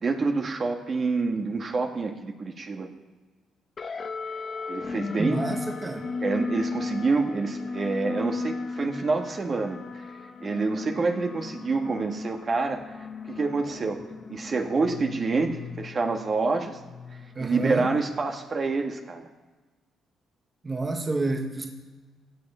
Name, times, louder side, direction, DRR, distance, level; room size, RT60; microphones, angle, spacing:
voice 1, 0.0-2.9 4.7-5.4 6.2-10.1 10.4-12.9 13.3-14.0 14.3-16.8 17.4-19.2, right 4 dB, 40° right, 3 dB, 1.6 m, -27 dB
sound 1, 3.8-18.5, left 4 dB, 40° left, 1.3 m, -36 dB
voice 2, 5.2-6.1 17.3-17.9 20.6-21.7, right 2 dB, 25° right, 3 dB, 1.5 m, -29 dB
16.5 x 9.7 x 5.6 m, 1.3 s
cardioid pair, 90°, 0 cm